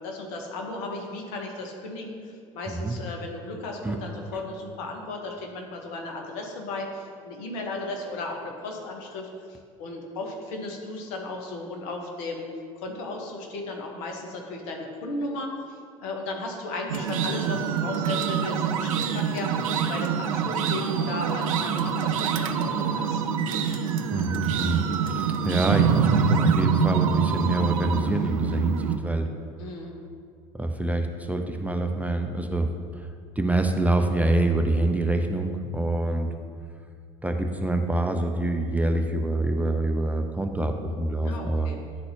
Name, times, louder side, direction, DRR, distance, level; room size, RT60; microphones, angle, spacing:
voice 1, 0.0-12.5 12.8-15.5 16.0-23.3 29.6-29.9 41.2-41.8, left 2 dB, 70° left, 1 dB, 1.1 m, -35 dB
sound 1, 16.9-29.0, right 7 dB, 80° right, 0.4 m, -25 dB
voice 2, 24.1-29.3 30.5-32.7 33.4-36.3 37.2-41.7, right 2 dB, 10° right, 4 dB, 0.5 m, -26 dB
10.5 x 4.0 x 2.9 m, 2.2 s
hypercardioid pair, 65°, 17 cm